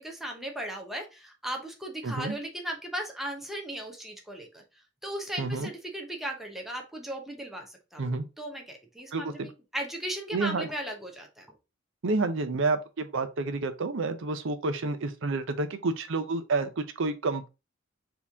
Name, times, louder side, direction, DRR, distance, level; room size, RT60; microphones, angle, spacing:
voice 1, 0.0-4.6 5.0-8.0 8.4-11.5, right 1 dB, ahead, 0.8 m, -37 dB
voice 2, 2.0-2.4 5.4-5.7 8.0-8.3 9.1-9.5 10.3-10.7 12.0-17.5, right 3 dB, 60° right, 0.6 m, -29 dB
4.2 x 2.9 x 3.4 m
head